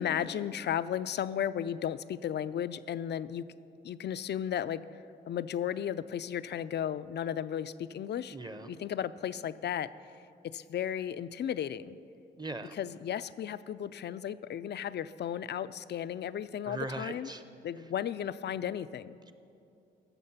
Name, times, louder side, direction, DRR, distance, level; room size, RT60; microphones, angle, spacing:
voice 1, 0.0-3.4 3.8-4.8 5.3-8.4 8.7-9.9 10.4-12.0 12.7-17.3 17.6-19.2, left 9 dB, 60° left, 15 dB, 0.4 m, -34 dB
voice 2, 8.3-8.7 12.4-12.8 16.6-17.4, right 2 dB, 20° right, 10 dB, 0.8 m, -39 dB
15.0 x 6.6 x 5.6 m, 2.6 s
cardioid pair, 65°, 20 cm